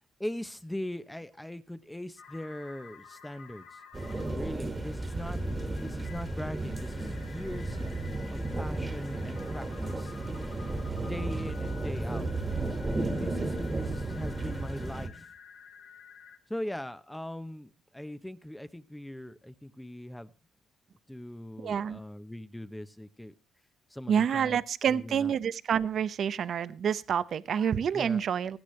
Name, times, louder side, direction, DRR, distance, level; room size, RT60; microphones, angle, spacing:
voice 1, 0.2-3.8 4.3-5.4 5.7-7.8 8.3-10.1 11.1-12.3 13.2-15.3 16.5-20.3 21.1-23.3 23.9-25.3 27.9-28.3, left 1 dB, 5° left, 0.7 m, -40 dB
sound 1, 2.2-16.4, left 6 dB, 85° left, 2.1 m, -52 dB
sound 2, 3.9-15.1, right 2 dB, 25° right, 1.6 m, -33 dB
voice 2, 21.6-22.0 24.1-28.6, right 8 dB, 60° right, 0.6 m, -28 dB
16.5 x 13.5 x 3.2 m
cardioid pair, 90°, 0 cm